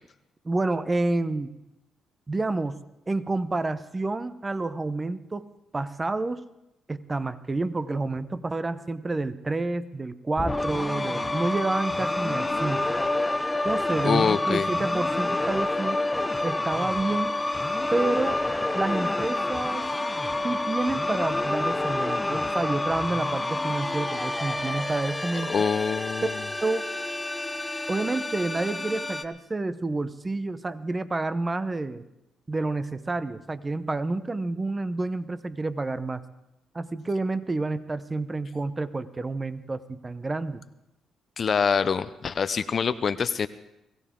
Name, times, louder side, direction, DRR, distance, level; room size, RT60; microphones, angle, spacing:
voice 1, 0.4-1.5 2.3-5.5 5.7-6.5 6.9-12.9 13.6-16.0 16.4-17.3 17.9-18.4 18.7-19.9 20.4-25.5 26.2-26.3 26.6-26.9 27.9-32.0 32.5-36.2 36.7-40.6, right 2 dB, 25° right, 14 dB, 0.7 m, -29 dB
sound 1, 10.4-29.2, left 2 dB, 15° left, 0.9 m, -28 dB
voice 2, 14.0-14.7 25.5-26.3 41.4-43.5, left 6 dB, 45° left, 12 dB, 0.6 m, -25 dB
21.5 x 16.0 x 3.8 m, 0.87 s
cardioid pair, 90°, 0 cm